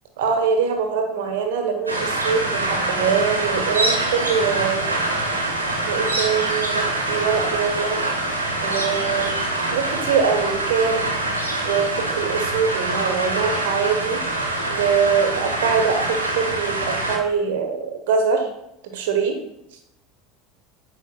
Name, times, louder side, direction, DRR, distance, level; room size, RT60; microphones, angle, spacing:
voice 1, 0.2-4.9 5.8-8.0 8.6-9.4 9.7-11.1 11.6-14.2 14.7-18.5 18.9-19.4, right 6 dB, 60° right, 5 dB, 1.1 m, -23 dB
sound 1, 1.9-17.2, right 2 dB, 85° right, 0.8 m, -24 dB
8.2 x 5.1 x 2.3 m, 0.80 s
figure-of-eight pair, 70°, 0 cm